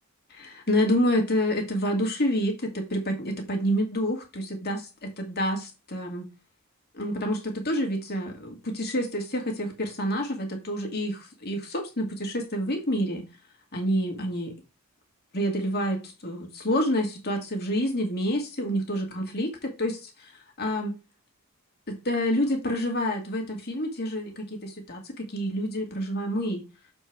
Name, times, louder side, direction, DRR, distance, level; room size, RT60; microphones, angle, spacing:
voice 1, 0.3-6.3 6.9-13.3 13.7-14.5 15.3-20.3 20.6-20.9 21.9-26.6, equal, 45° left, 2.2 m, -28 dB
7.1 x 4.5 x 4.6 m
head